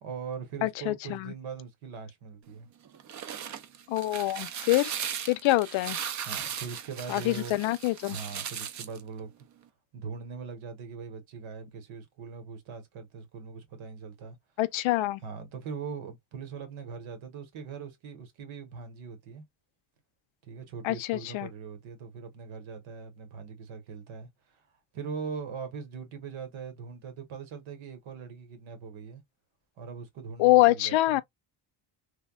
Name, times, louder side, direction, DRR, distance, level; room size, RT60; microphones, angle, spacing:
voice 1, 0.0-2.7 6.3-7.6 8.1-9.3 9.9-14.4 15.2-19.4 20.4-24.6 24.9-29.2 29.8-31.2, right 6 dB, 90° right, 1.2 m, -41 dB
voice 2, 0.6-1.3 3.9-4.9 5.3-6.0 7.1-8.2 14.6-15.2 20.8-21.5 30.4-31.2, left 18 dB, 80° left, 0.5 m, -25 dB
sound 1, 2.9-9.0, right 8 dB, 40° right, 0.4 m, -37 dB
3.4 x 2.1 x 2.2 m
cardioid pair, 150°, 46 cm